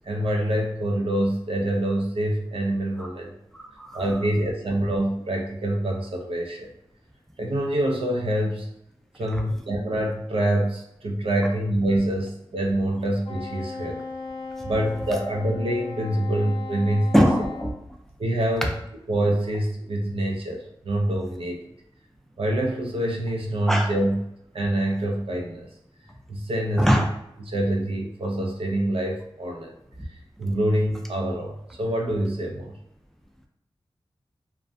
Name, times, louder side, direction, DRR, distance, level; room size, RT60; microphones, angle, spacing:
voice 1, 0.1-3.3 3.9-6.7 7.4-8.7 9.1-14.0 14.6-17.3 18.2-18.7 19.1-21.7 22.4-24.2 24.5-25.7 26.3-27.0 27.4-29.8 30.4-32.7, right 1 dB, 65° right, 1 dB, 0.5 m, -25 dB
voice 2, 3.5-4.0 9.3-9.4 17.1-17.7 23.7-23.9 26.8-27.0, equal, 5° left, 2 dB, 0.3 m, -21 dB
Wind instrument woodwind instrument, 13.2-17.7, left 4 dB, 75° left, 0.5 m, -37 dB
2.4 x 2.2 x 2.6 m, 0.80 s
wide cardioid pair, 75°, 10 cm